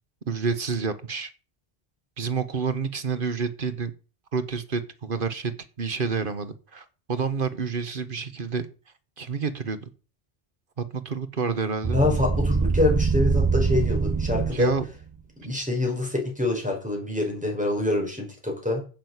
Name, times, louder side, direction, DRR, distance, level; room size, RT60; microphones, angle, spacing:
voice 1, 0.3-1.3 2.2-3.9 4.3-8.7 9.2-9.8 10.8-12.0 14.5-14.8, right 5 dB, 55° right, 11 dB, 1.4 m, -29 dB
sound 1, 11.8-14.8, right 4 dB, 25° right, 0.5 m, -24 dB
voice 2, 11.9-14.7 15.4-18.8, left 2 dB, 5° right, 0 dB, 5.3 m, -25 dB
9.0 x 7.7 x 8.0 m, 0.36 s
omnidirectional pair, 1.1 m